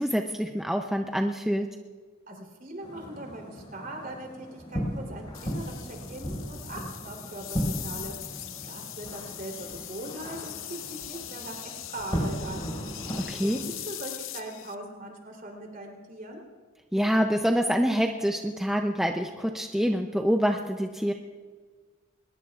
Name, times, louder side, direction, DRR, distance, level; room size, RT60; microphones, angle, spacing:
voice 1, 0.0-1.7 13.3-13.6 16.9-21.1, equal, ahead, 3 dB, 0.5 m, -26 dB
voice 2, 2.3-12.7 13.4-16.4, right 1 dB, 45° right, 1 dB, 3.4 m, -41 dB
sound 1, 2.8-13.7, equal, 25° left, 5.6 m, -36 dB
sound 2, 5.3-14.7, left 12 dB, 75° left, 0.8 m, -41 dB
22.5 x 20.5 x 2.4 m, 1.5 s
head